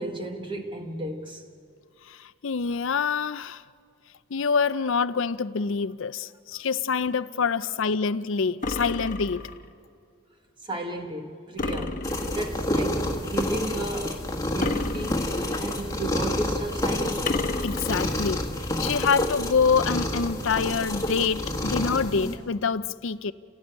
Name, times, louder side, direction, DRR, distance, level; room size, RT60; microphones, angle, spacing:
voice 1, 0.0-1.4 6.5-6.6 7.6-7.8 10.6-14.2 14.5-15.3 15.6-17.3, right 1 dB, 20° right, 1.3 m, -34 dB
voice 2, 2.1-3.6 4.3-9.5 17.6-18.4 18.8-23.3, left 5 dB, 60° left, 0.5 m, -26 dB
sound 1, 8.6-9.7 11.6-12.6 14.6-15.7 17.3-18.3, left 2 dB, 40° left, 1.1 m, -31 dB
sound 2, 12.0-22.3, left 1 dB, 15° left, 1.6 m, -29 dB
30.0 x 17.0 x 8.9 m
head